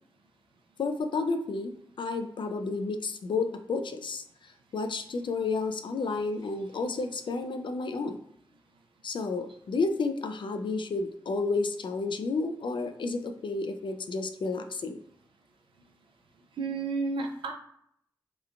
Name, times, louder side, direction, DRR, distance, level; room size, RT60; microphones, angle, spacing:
voice 1, 0.8-1.7 2.0-4.2 4.7-8.2 9.0-15.0, left 3 dB, 70° left, 7 dB, 0.4 m, -31 dB
voice 2, 16.6-17.5, right 4 dB, 85° right, 3 dB, 0.4 m, -31 dB
3.0 x 2.1 x 2.4 m, 0.71 s
cardioid pair, 40°, 9 cm